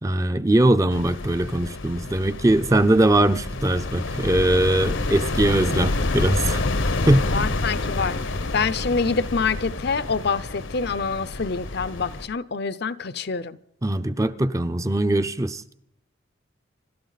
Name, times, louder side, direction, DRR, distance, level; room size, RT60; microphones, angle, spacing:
voice 1, 0.0-6.6 7.1-7.3 13.8-15.6, right 1 dB, 15° right, 0.5 m, -21 dB
sound 1, 0.9-12.3, left 2 dB, 75° left, 1.0 m, -28 dB
voice 2, 7.3-8.2 8.5-13.6, left 5 dB, 55° left, 0.6 m, -26 dB
26.0 x 12.5 x 4.1 m
head